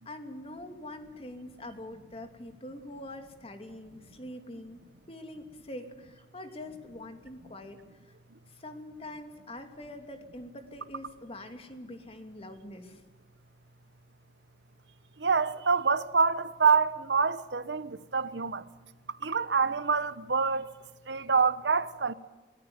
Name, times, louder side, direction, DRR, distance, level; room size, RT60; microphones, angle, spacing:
voice 1, 0.1-4.8 5.1-7.8 8.5-13.0, left 1 dB, 35° left, 2.7 m, -44 dB
voice 2, 15.2-18.6 19.2-20.7 21.1-22.1, right 5 dB, 80° right, 1.0 m, -26 dB
23.5 x 19.0 x 9.6 m
head